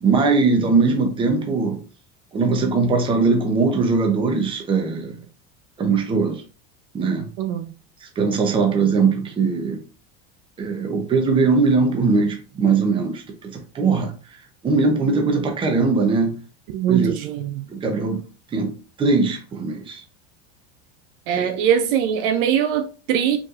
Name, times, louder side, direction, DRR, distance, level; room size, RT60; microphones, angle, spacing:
voice 1, 0.0-1.8 2.3-5.2 5.8-6.4 6.9-7.3 8.0-9.8 10.6-14.1 14.6-16.4 16.9-17.1 17.7-18.2 18.5-20.0 21.3-21.4, right 4 dB, 15° right, 0.7 m, -20 dB
voice 2, 7.4-7.7 16.7-17.7 21.3-23.4, right 9 dB, 55° right, 0.5 m, -21 dB
4.9 x 3.2 x 2.4 m
supercardioid pair, 160°, 32 cm